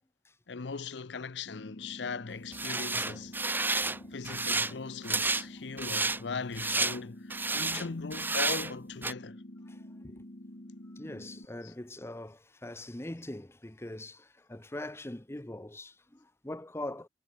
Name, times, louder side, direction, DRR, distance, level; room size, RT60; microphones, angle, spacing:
voice 1, 0.5-3.4 4.1-9.4 11.6-11.7, left 4 dB, 90° left, 0.7 m, -39 dB
sound 1, 1.5-11.5, left 1 dB, 50° left, 2.3 m, -48 dB
sound 2, 2.5-4.0 4.3-4.7 5.0-5.4 5.8-6.2 6.6-7.0 7.3-7.9 8.1-8.7 9.0-9.1, right 3 dB, 10° right, 0.9 m, -30 dB
voice 2, 9.7-10.2 10.7-17.1, left 1 dB, 15° left, 0.9 m, -42 dB
head